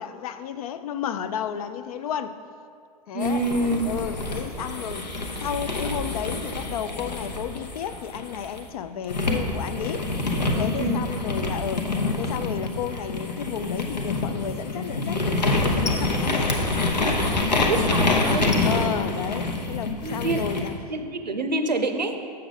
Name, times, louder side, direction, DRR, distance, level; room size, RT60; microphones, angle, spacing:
voice 1, 0.0-2.4 3.1-5.1 5.4-10.1 10.5-11.9 12.2-16.5 18.6-20.8, left 8 dB, 60° left, 12 dB, 0.4 m, -32 dB
voice 2, 3.1-3.9 10.8-11.0 17.7-18.6 20.0-20.5 20.9-22.2, right 2 dB, 90° right, 7 dB, 0.6 m, -26 dB
sound 1, 3.2-8.6 9.1-20.7, left 2 dB, 85° left, 0.8 m, -26 dB
6.6 x 6.5 x 3.9 m, 2.3 s
figure-of-eight pair, 95°, 21 cm